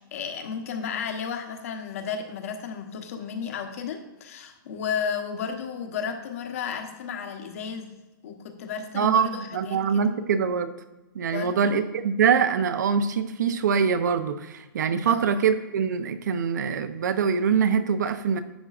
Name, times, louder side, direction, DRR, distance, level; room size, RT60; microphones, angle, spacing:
voice 1, 0.0-7.9 8.2-10.0 11.3-11.8 15.0-15.3, left 6 dB, 40° left, 4 dB, 1.1 m, -33 dB
voice 2, 8.9-10.7 11.1-18.4, right 6 dB, 55° right, 10 dB, 0.7 m, -24 dB
11.5 x 8.1 x 2.5 m, 1.1 s
hypercardioid pair, 180°, 11 cm